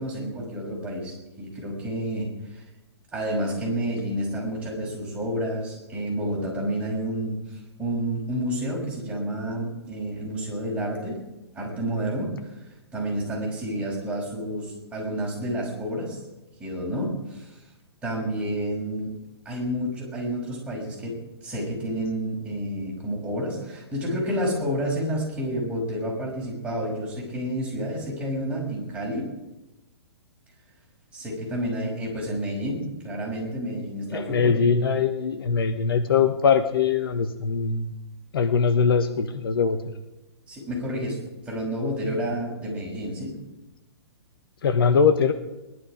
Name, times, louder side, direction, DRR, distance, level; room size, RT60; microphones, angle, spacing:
voice 1, 0.0-2.6 3.1-11.2 11.5-12.5 12.9-16.2 16.6-17.5 18.0-19.1 19.4-29.3 31.1-34.6 40.5-41.2 41.5-43.3, equal, 10° right, -4 dB, 6.1 m, -30 dB
voice 2, 34.1-37.9 38.3-39.8 44.6-45.3, left 5 dB, 60° left, 9 dB, 1.2 m, -22 dB
21.0 x 11.5 x 5.1 m, 0.98 s
figure-of-eight pair, 120°, 14 cm